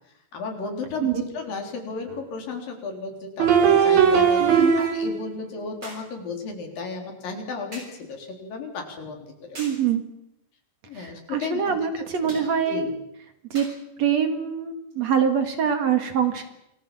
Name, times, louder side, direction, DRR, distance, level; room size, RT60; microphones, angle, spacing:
voice 1, 0.3-9.6 10.9-12.9, left 4 dB, 75° left, 3 dB, 5.4 m, -34 dB
sound 1, 2.1-2.2 3.4-5.4, right 7 dB, 80° right, 4.6 m, -19 dB
voice 2, 4.4-4.8 9.6-10.0 10.9-12.9 13.5-13.7 14.0-16.5, right 7 dB, 55° right, 7 dB, 2.7 m, -24 dB
sound 2, 5.8-6.2 7.7-8.0 9.5-9.9 12.3-12.5 13.5-13.8 14.9-15.0, right 1 dB, 30° right, 7.3 m, -41 dB
27.5 x 19.5 x 7.6 m, 0.83 s
omnidirectional pair, 4.0 m